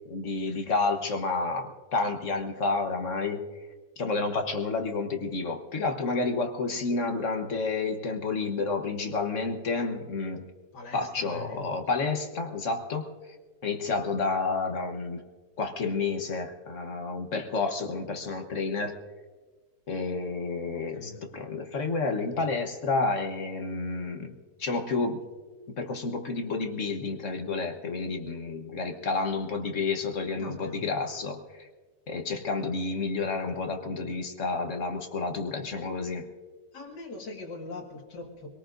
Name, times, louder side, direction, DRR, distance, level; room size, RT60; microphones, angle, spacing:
voice 1, 0.1-3.4 4.0-10.5 10.9-13.1 13.6-15.2 15.6-19.0 19.9-24.3 24.6-25.2 25.7-31.7 32.1-36.3, left 3 dB, 50° left, 4 dB, 1.3 m, -30 dB
voice 2, 10.7-11.6 20.9-21.2 30.4-30.8 36.7-38.5, left 3 dB, 85° left, 1 dB, 2.4 m, -41 dB
25.0 x 18.5 x 2.6 m, 1.4 s
omnidirectional pair, 1.8 m